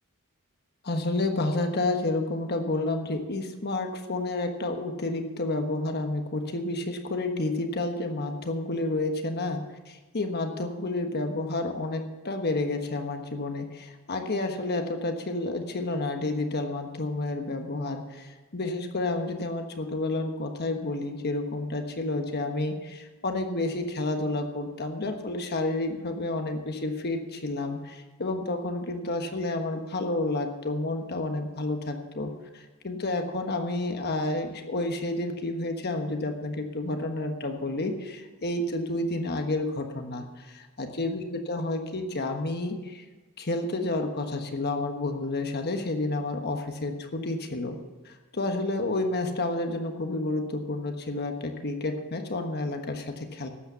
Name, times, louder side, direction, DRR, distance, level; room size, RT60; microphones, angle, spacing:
voice 1, 0.8-43.0 43.4-47.8 48.0-53.5, left 2 dB, 50° left, 5 dB, 1.3 m, -30 dB
12.5 x 8.8 x 7.0 m, 1.3 s
head